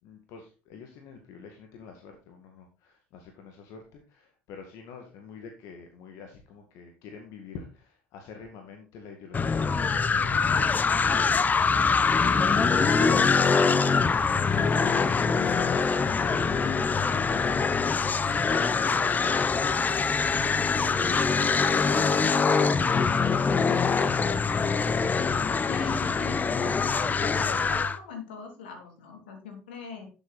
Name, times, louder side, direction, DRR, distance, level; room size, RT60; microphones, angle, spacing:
voice 1, 0.0-14.2, left 5 dB, 65° left, 4 dB, 2.1 m, -47 dB
sound 1, 9.3-28.0, left 5 dB, 30° left, 1.0 m, -24 dB
voice 2, 25.2-26.4 27.0-30.1, left 4 dB, 85° left, 4 dB, 3.2 m, -41 dB
11.5 x 8.2 x 4.2 m, 0.33 s
hypercardioid pair, 60°, 6 cm